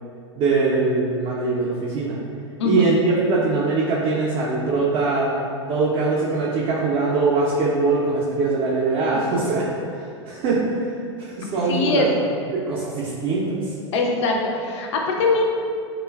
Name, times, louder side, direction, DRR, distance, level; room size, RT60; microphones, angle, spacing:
voice 1, 0.4-2.2 2.6-5.3 5.7-9.7 9.9-12.0 12.5-13.7, right 3 dB, 40° right, -6 dB, 0.4 m, -22 dB
voice 2, 2.6-2.9 11.7-12.1 13.9-15.4, left 3 dB, 70° left, 0 dB, 0.4 m, -22 dB
3.0 x 2.1 x 2.2 m, 2.4 s
hypercardioid pair, 95°, 16 cm